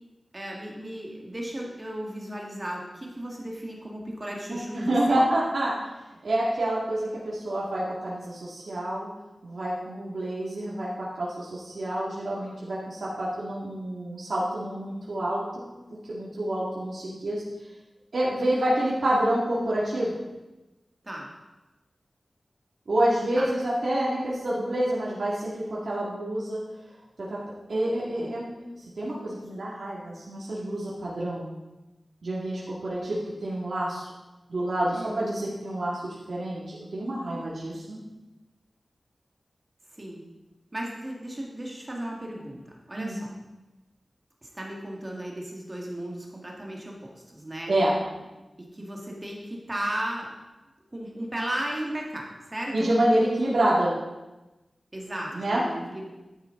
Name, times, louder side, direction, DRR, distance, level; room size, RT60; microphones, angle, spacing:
voice 1, 0.3-5.2 21.0-21.3 23.3-23.5 34.9-35.3 39.9-40.2 40.7-43.3 44.4-47.7 48.6-50.3 50.9-52.9 54.9-56.1, right 1 dB, 25° right, -2 dB, 1.9 m, -35 dB
voice 2, 4.5-5.8 6.2-9.1 9.4-15.7 16.1-17.4 18.1-20.2 22.9-26.6 27.2-27.4 27.7-28.5 29.0-31.5 32.2-34.1 34.5-38.0 43.0-43.2 47.7-48.0 52.7-53.9 55.3-55.6, right 1 dB, 75° right, -7 dB, 2.3 m, -28 dB
11.5 x 9.1 x 3.9 m, 1.1 s
wide cardioid pair, 95°, 0 cm